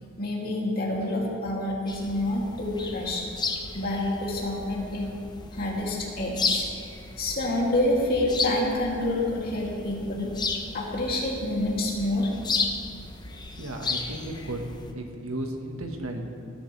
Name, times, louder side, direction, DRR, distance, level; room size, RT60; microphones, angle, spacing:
voice 1, 0.2-3.3 3.7-5.1 5.5-6.7 7.2-10.3 10.7-12.3, left 1 dB, 45° left, -3 dB, 2.6 m, -27 dB
sound 1, 1.9-14.9, left 4 dB, 20° left, 0.8 m, -34 dB
voice 2, 13.6-14.6 14.9-16.2, right 1 dB, 85° right, 3 dB, 1.5 m, -34 dB
19.0 x 11.0 x 3.3 m, 2.4 s
head